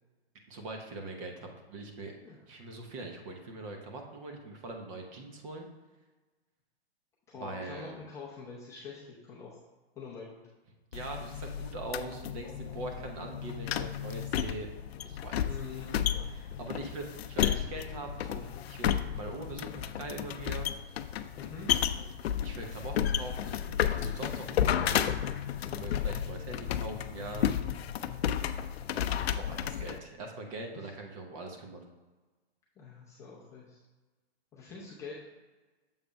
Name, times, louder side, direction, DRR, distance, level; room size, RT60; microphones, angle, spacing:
voice 1, 0.5-2.1 2.5-5.7 7.4-8.0 10.9-14.7 15.0-15.5 15.7-15.8 16.3-20.7 22.4-25.2 25.7-27.5 29.3-31.9, right 2 dB, 30° right, 3 dB, 1.0 m, -42 dB
voice 2, 7.3-9.6 10.0-10.4 15.4-16.0 16.8-16.9 21.4-21.7 30.7-30.9 32.8-33.8 34.5-35.2, left 4 dB, 10° left, -7 dB, 0.6 m, -45 dB
sound 1, 10.9-30.0, left 10 dB, 75° left, 0.5 m, -32 dB
7.2 x 3.4 x 5.2 m, 1.3 s
hypercardioid pair, 160°, 31 cm